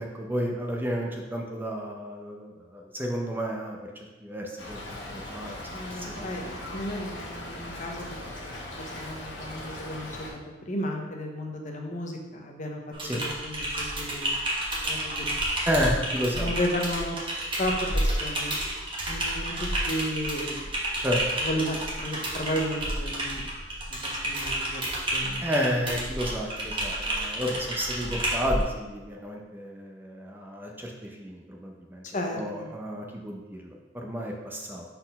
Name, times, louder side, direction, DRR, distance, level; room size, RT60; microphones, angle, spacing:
voice 1, 0.0-3.8 4.2-4.8 5.1-5.6 6.1-6.4 13.1-13.2 15.7-16.5 21.0-21.2 25.4-32.0 32.3-34.8, equal, 10° right, 0 dB, 0.6 m, -31 dB
Stream / Trickle dribble, 4.6-10.3, left 1 dB, 85° left, 1.3 m, -39 dB
voice 2, 5.7-8.1 9.0-14.4 14.9-15.3 16.3-17.2 17.6-18.5 19.1-20.6 21.4-23.5 23.9-25.5 32.1-32.7, equal, 45° left, 2 dB, 0.8 m, -33 dB
Typing, 12.9-28.6, right 1 dB, 30° right, 1.1 m, -30 dB
4.2 x 4.1 x 5.4 m, 1.2 s
head